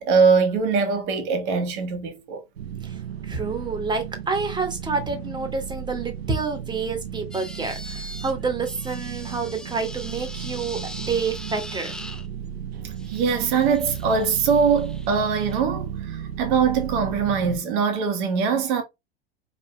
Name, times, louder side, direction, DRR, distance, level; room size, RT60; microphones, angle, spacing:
voice 1, 0.0-2.4 13.1-18.8, right 5 dB, 55° right, 1.5 m, -22 dB
sound 1, 2.5-17.6, right 9 dB, 70° right, 0.7 m, -34 dB
voice 2, 3.2-11.9, right 4 dB, 15° right, 1.5 m, -28 dB
sound 2, 7.3-8.3 8.6-12.3 13.0-15.6, left 1 dB, ahead, 0.6 m, -41 dB
4.8 x 3.7 x 2.3 m
figure-of-eight pair, 75°, 32 cm